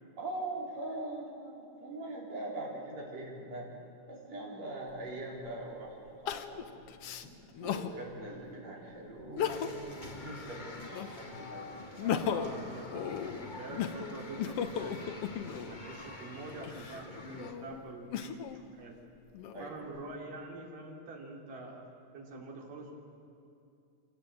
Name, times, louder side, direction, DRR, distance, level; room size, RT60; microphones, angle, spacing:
voice 1, 0.2-3.7 4.1-6.9 7.6-11.7 19.5-19.9, right 2 dB, 50° right, -3 dB, 5.5 m, -42 dB
sound 1, 3.1-15.4, equal, 30° right, 7.6 m, -60 dB
Crying sobbing, 4.9-5.0 6.3-7.9 8.5-8.6 9.2-9.9 10.3-11.3 11.8-15.8 16.5-18.6 19.2-20.0, left 8 dB, 70° left, 1.4 m, -36 dB
sound 2, 9.4-17.5, left 2 dB, 30° left, 0.8 m, -47 dB
voice 2, 12.0-15.3 15.7-19.0 19.6-21.9 22.1-22.9, right 2 dB, 80° right, 0 dB, 4.8 m, -45 dB
26.5 x 17.5 x 8.8 m, 2.5 s
omnidirectional pair, 3.8 m